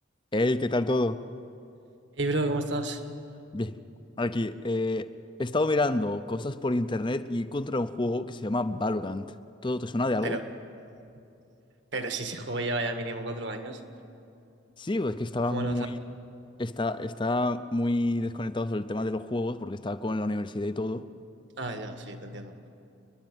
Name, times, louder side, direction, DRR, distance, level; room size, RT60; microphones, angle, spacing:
voice 1, 0.3-1.2 3.5-3.7 4.2-5.1 5.4-9.3 9.6-10.4 14.8-16.0 16.6-21.1, left 2 dB, 25° left, 12 dB, 0.6 m, -28 dB
voice 2, 2.1-3.0 10.2-10.4 11.9-13.8 15.5-15.9 21.6-22.5, right 2 dB, 60° right, 6 dB, 1.6 m, -31 dB
30.0 x 11.0 x 9.2 m, 2.6 s
head